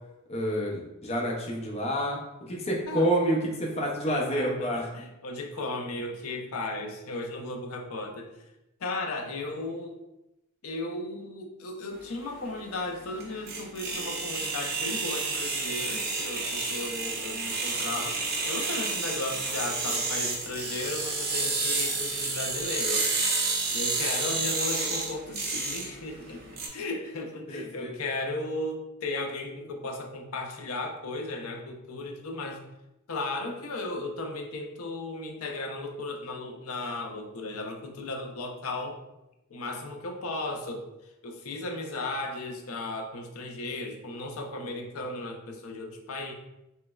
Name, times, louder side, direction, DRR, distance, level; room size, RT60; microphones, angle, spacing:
voice 1, 0.3-4.9 27.5-27.9, equal, 30° left, -1 dB, 0.6 m, -28 dB
voice 2, 4.1-8.5 8.8-10.0 10.6-23.1 23.7-32.6 33.1-39.0 39.5-40.8 41.2-46.3, left 2 dB, 75° left, 2 dB, 0.5 m, -35 dB
sound 1, 12.0-26.7, right 3 dB, 45° right, 0.6 m, -30 dB
3.2 x 3.0 x 2.3 m, 0.92 s
head